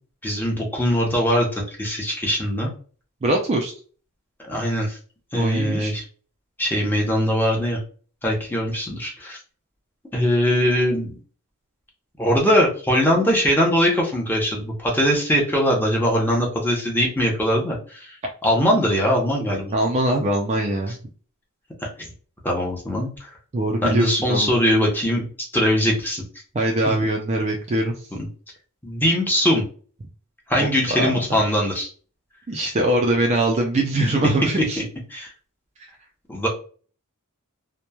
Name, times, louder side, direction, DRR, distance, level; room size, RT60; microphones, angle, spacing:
voice 1, 0.2-2.7 4.4-5.0 5.3-6.0 6.6-7.8 8.2-9.4 10.1-11.2 12.2-18.1 18.4-19.7 21.8-22.1 22.4-23.3 23.8-25.2 25.5-26.2 28.8-29.6 30.5-31.9 35.1-35.3 36.3-36.5, equal, 10° left, -2 dB, 0.7 m, -21 dB
voice 2, 3.2-3.7 5.3-5.9 19.7-21.0 23.5-24.6 26.5-27.9 30.6-30.7 31.0-31.1 32.5-34.8, right 1 dB, 30° right, 1 dB, 0.4 m, -22 dB
2.9 x 2.2 x 2.2 m, 0.41 s
head